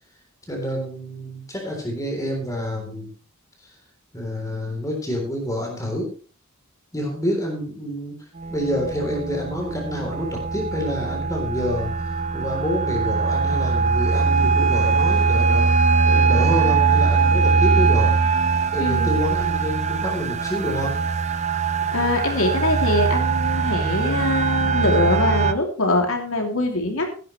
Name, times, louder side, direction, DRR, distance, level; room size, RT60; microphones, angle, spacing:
voice 1, 0.5-3.1 4.1-6.1 6.9-8.2 8.5-18.2 18.7-21.0, equal, 15° left, 1 dB, 3.7 m, -28 dB
sound 1, 8.4-25.5, right 4 dB, 30° right, 0.6 m, -21 dB
voice 2, 18.8-19.2 21.9-27.1, left 2 dB, 75° left, 2 dB, 3.0 m, -23 dB
15.5 x 11.0 x 3.3 m, 0.38 s
head